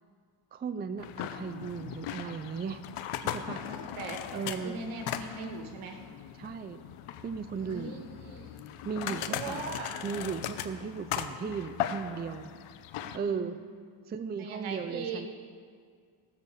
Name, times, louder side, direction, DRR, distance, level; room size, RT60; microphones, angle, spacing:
voice 1, 0.5-2.8 3.2-3.6 4.3-4.8 6.4-6.8 7.2-7.9 8.8-9.8 10.0-12.5 13.1-13.6 14.1-15.3, right 6 dB, 20° right, 10 dB, 0.4 m, -36 dB
sound 1, 1.0-13.2, left 10 dB, 90° left, 0.8 m, -38 dB
voice 2, 3.6-4.2 4.5-6.0 7.6-8.6 9.0-9.9 13.0-13.6 14.4-15.2, right 3 dB, 75° right, 3 dB, 1.9 m, -40 dB
16.5 x 6.5 x 6.9 m, 2.1 s
cardioid pair, 120°, 49 cm